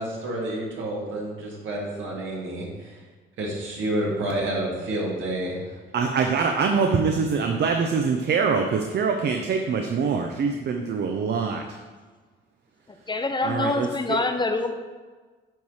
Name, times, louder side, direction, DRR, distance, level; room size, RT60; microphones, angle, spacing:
voice 1, 0.0-2.9 3.4-5.6, right 1 dB, 75° right, -3 dB, 2.2 m, -29 dB
voice 2, 5.9-11.6 13.4-14.2, right 5 dB, 55° right, 4 dB, 0.7 m, -24 dB
voice 3, 13.1-14.7, left 3 dB, 25° left, 7 dB, 0.6 m, -25 dB
9.0 x 3.2 x 5.6 m, 1.4 s
cardioid pair, 90°, 20 cm